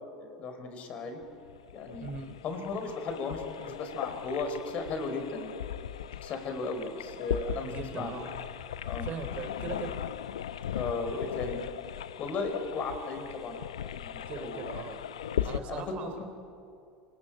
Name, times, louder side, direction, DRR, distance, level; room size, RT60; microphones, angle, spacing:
voice 1, 0.2-1.2 1.7-2.0 2.4-5.5 6.2-8.1 8.8-9.1 10.7-11.6 12.2-13.6 13.8-14.7 15.1-16.1, left 3 dB, 45° left, 7 dB, 4.3 m, -36 dB
sound 1, 1.2-15.6, left 10 dB, 80° left, 0.7 m, -38 dB
voice 2, 2.0-2.4 7.6-8.4 9.0-10.0 14.2-15.0 15.4-16.3, right 5 dB, 45° right, 8 dB, 3.3 m, -40 dB
27.5 x 19.0 x 9.0 m, 2.5 s
hypercardioid pair, 85°, 3 cm